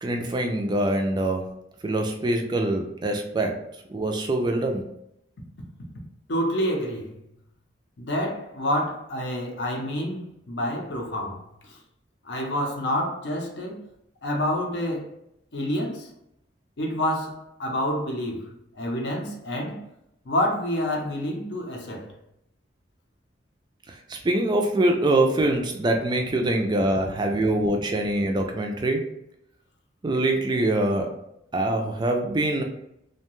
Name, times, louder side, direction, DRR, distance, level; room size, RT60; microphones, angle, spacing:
voice 1, 0.0-1.4 1.8-3.6 3.9-4.8 23.9-29.1 30.0-31.1 31.5-32.6, right 1 dB, 25° right, 0.3 m, -24 dB
voice 2, 6.3-7.2 8.0-11.8 12.2-13.8 14.2-15.1 15.5-16.1 16.8-19.8 20.2-22.1, equal, 65° left, 0.6 m, -28 dB
2.7 x 2.2 x 3.0 m
head